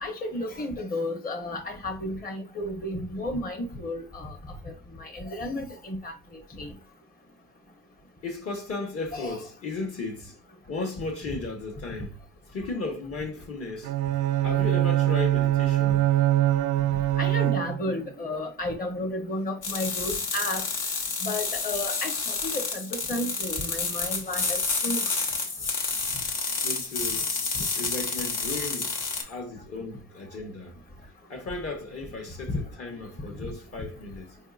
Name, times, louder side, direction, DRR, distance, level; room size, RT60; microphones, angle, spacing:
voice 1, 0.0-4.3 5.0-6.1 6.6-6.7 9.1-9.4 17.2-20.6 21.2-25.0, left 1 dB, 30° left, 0.9 m, -32 dB
voice 2, 8.2-10.4 10.7-12.2 12.5-13.9 14.4-16.1 26.6-27.3 27.8-30.8 31.3-34.4, left 3 dB, 50° left, 1.1 m, -35 dB
Bowed string instrument, 13.8-18.1, right 13 dB, 85° right, 0.5 m, -23 dB
sound 1, 19.6-29.2, left 4 dB, 80° left, 1.1 m, -29 dB
4.7 x 2.7 x 2.3 m
cardioid pair, 90°, 30 cm